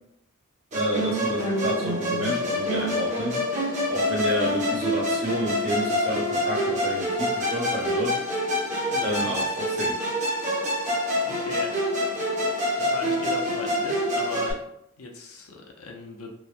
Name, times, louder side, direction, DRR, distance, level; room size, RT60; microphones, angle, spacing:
Musical instrument, 0.7-14.5, left 1 dB, 35° right, 0.6 m, -26 dB
voice 1, 0.7-3.4 3.9-8.2 9.0-10.0, equal, 65° right, -6 dB, 1.0 m, -30 dB
voice 2, 8.9-9.3 11.2-11.7 12.8-14.6 15.0-16.3, left 3 dB, 80° left, 1 dB, 0.5 m, -38 dB
2.9 x 2.0 x 2.4 m, 0.76 s
head